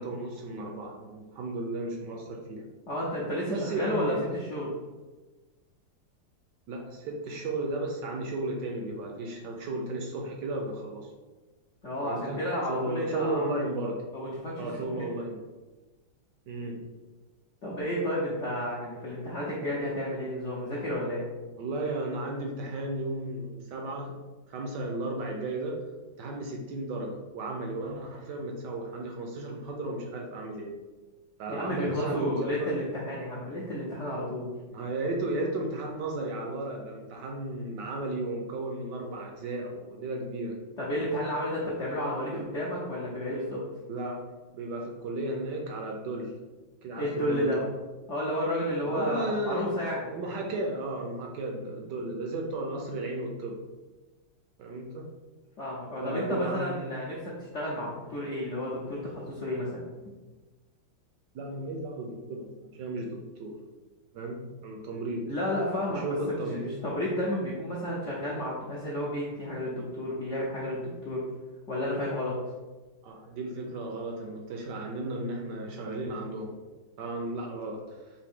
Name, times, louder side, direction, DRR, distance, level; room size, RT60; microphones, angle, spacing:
voice 1, 0.0-2.7 3.5-4.2 6.7-11.1 12.0-12.4 12.7-14.0 14.6-15.4 16.5-16.8 21.5-24.2 24.5-25.8 26.2-30.7 31.4-32.8 34.7-40.6 43.9-46.3 46.8-47.7 48.9-49.7 50.1-53.6 54.6-55.1 56.0-56.9 61.3-63.5 64.1-65.3 65.9-66.7 73.0-76.5 77.0-78.1, right 2 dB, 75° right, 1 dB, 1.0 m, -34 dB
voice 2, 2.9-4.7 11.8-13.5 14.1-14.7 14.9-15.0 17.6-21.2 31.5-34.5 40.8-43.6 47.0-47.6 48.1-50.1 55.6-59.8 65.3-71.2 71.7-72.4, left 1 dB, 75° left, -6 dB, 0.6 m, -31 dB
4.8 x 2.6 x 3.5 m, 1.2 s
omnidirectional pair, 2.3 m